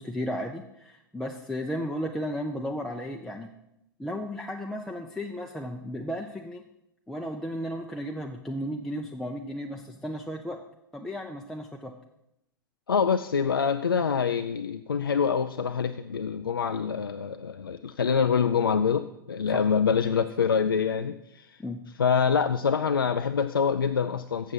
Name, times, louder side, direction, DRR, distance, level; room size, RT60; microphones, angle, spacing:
voice 1, 0.0-3.5 4.0-6.6 7.1-10.6 10.9-11.9 19.5-19.6 21.6-21.9, equal, 5° left, 1 dB, 0.6 m, -34 dB
voice 2, 12.9-21.6 22.0-24.5, left 6 dB, 80° left, 9 dB, 0.4 m, -25 dB
7.4 x 7.2 x 6.4 m, 0.83 s
figure-of-eight pair, 95°, 12 cm